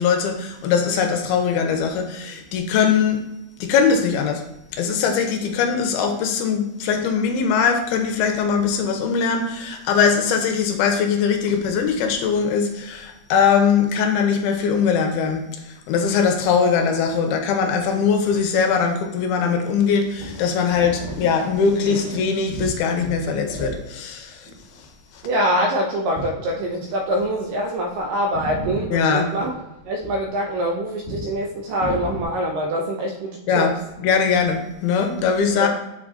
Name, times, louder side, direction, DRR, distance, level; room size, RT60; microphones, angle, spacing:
voice 1, 0.0-3.2 3.6-4.4 4.7-15.5 15.9-24.5 28.9-29.4 33.5-33.7 34.0-35.7, left 6 dB, 85° left, 5 dB, 2.6 m, -21 dB
sound 1, 19.9-22.8 23.0-24.0 24.3-24.9 26.2-26.5 27.2-27.3 27.6-28.0 28.3-30.6 31.0-31.3 31.8-32.2, right 1 dB, 20° right, 1.8 m, -34 dB
voice 2, 25.2-29.5 29.9-33.7 35.2-35.3 35.6-35.7, equal, 75° right, 1 dB, 2.1 m, -24 dB
7.3 x 3.7 x 3.8 m, 0.92 s
omnidirectional pair, 4.6 m